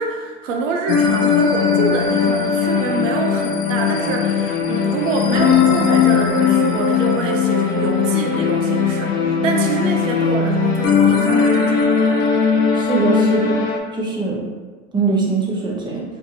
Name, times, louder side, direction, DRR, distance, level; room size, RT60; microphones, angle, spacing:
voice 1, 0.0-12.2, right 4 dB, 85° right, 1 dB, 0.5 m, -26 dB
sound 1, 0.9-13.8, left 6 dB, 55° left, 0.6 m, -18 dB
voice 2, 12.8-13.6 13.9-14.4 14.9-16.0, right 4 dB, 10° right, -3 dB, 0.7 m, -21 dB
2.6 x 2.6 x 2.7 m, 1.4 s
hypercardioid pair, 80°, 37 cm